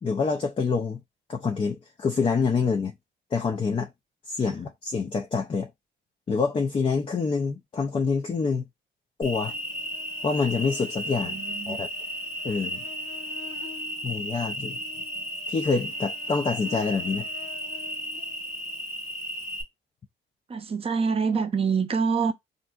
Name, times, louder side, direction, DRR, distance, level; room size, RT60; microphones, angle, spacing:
voice 1, 0.0-1.0 1.3-2.9 3.3-3.9 4.3-5.7 6.3-8.6 9.2-9.5 10.2-11.4 11.7-11.9 12.4-12.8 14.0-14.8 15.5-17.3, left 5 dB, 25° left, 0.4 m, -26 dB
Cricket, 9.2-19.6, equal, 70° left, 1.2 m, -34 dB
voice 2, 11.0-11.8 20.5-22.3, right 5 dB, 30° right, 0.5 m, -26 dB
3.5 x 2.5 x 2.3 m
cardioid pair, 90°, 20 cm